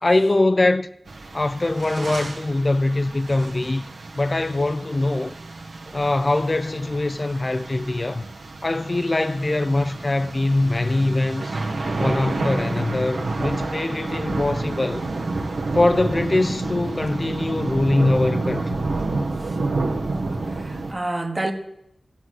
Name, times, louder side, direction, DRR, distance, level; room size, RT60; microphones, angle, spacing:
voice 1, 0.0-0.9 1.3-3.9 4.2-5.3 5.9-8.2 8.6-11.6 12.0-15.1 15.7-18.8, left 2 dB, 35° left, 0.4 m, -22 dB
sound 1, 1.1-20.9, right 3 dB, 85° right, 1.3 m, -29 dB
voice 2, 20.5-21.5, right 2 dB, 30° right, 1.3 m, -29 dB
12.5 x 7.9 x 6.3 m
wide cardioid pair, 85°, 0 cm